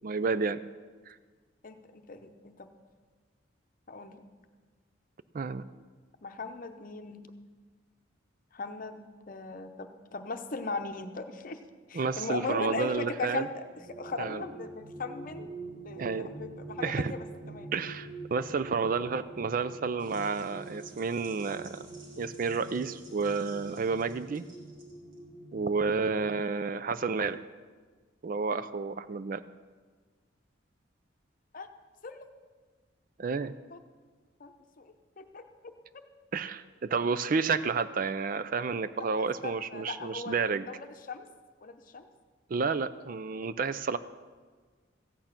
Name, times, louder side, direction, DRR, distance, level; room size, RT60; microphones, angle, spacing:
voice 1, 0.0-0.6 1.1-1.2 5.3-5.6 11.9-13.5 14.2-14.4 16.0-16.3 16.8-17.1 17.7-21.9 22.2-24.4 25.5-27.4 28.2-29.4 33.2-33.5 36.3-40.7 42.5-44.0, right 4 dB, 45° right, 13 dB, 0.4 m, -30 dB
voice 2, 1.6-2.7 3.9-4.2 6.2-7.3 8.5-11.6 11.9-13.6 14.0-15.5 15.8-17.7 31.5-31.7 32.0-32.3 33.7-33.8 34.4-35.5 39.2-40.3 40.7-41.2 41.6-42.1, left 3 dB, 45° left, 7 dB, 0.8 m, -38 dB
sound 1, 13.6-26.4, right 3 dB, 30° right, 1.3 m, -46 dB
sound 2, 20.0-25.2, right 2 dB, 80° right, 2.3 m, -56 dB
14.5 x 8.9 x 5.9 m, 1.4 s
head